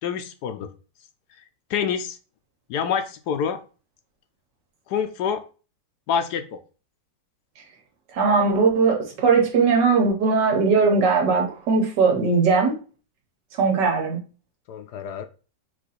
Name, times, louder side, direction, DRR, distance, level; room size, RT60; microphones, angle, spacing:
voice 1, 0.0-0.7 1.7-2.2 2.7-3.6 4.9-5.4 6.1-6.6 14.7-15.2, left 7 dB, 75° left, 1.1 m, -26 dB
voice 2, 8.1-12.7 13.6-14.2, right 4 dB, 80° right, 1.7 m, -19 dB
4.5 x 2.6 x 4.2 m
omnidirectional pair, 1.9 m